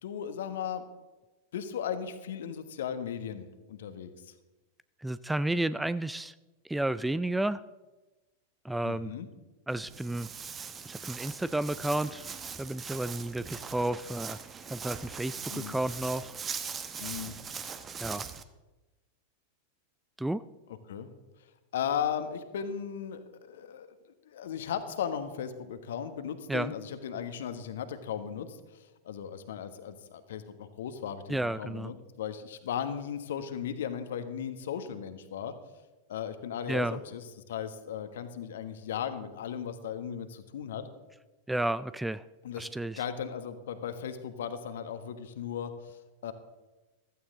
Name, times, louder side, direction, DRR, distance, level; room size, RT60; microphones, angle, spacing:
voice 1, 0.0-0.8 1.5-4.3 8.8-9.3 15.5-15.8 17.0-17.4 20.9-21.1 21.7-23.9 24.2-35.5 36.1-40.9 42.4-42.7 43.0-46.3, left 8 dB, 60° left, 10 dB, 1.3 m, -36 dB
voice 2, 5.0-6.3 6.6-7.6 8.6-9.1 9.7-10.3 10.9-12.3 12.6-14.4 14.7-15.4 15.7-16.3 18.0-18.3 20.2-20.4 26.5-26.7 31.3-31.9 36.7-37.0 41.5-42.2 42.6-43.0, right 1 dB, 5° right, 16 dB, 0.4 m, -31 dB
Walk footsteps, 9.7-18.4, right 6 dB, 20° right, 1.0 m, -41 dB
15.5 x 14.5 x 3.8 m, 1.1 s
figure-of-eight pair, 90°, 0 cm